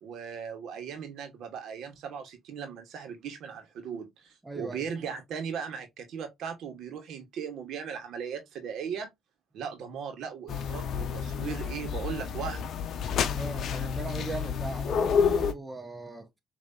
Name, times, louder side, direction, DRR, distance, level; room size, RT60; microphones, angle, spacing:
voice 1, 0.0-9.1 9.5-12.6, right 7 dB, 70° right, 1.5 m, -38 dB
voice 2, 4.4-4.8 13.3-16.4, right 2 dB, 15° right, 1.0 m, -38 dB
sound 1, 10.5-15.5, left 7 dB, 60° left, 0.7 m, -29 dB
5.7 x 2.9 x 2.8 m
cardioid pair, 90°, 0 cm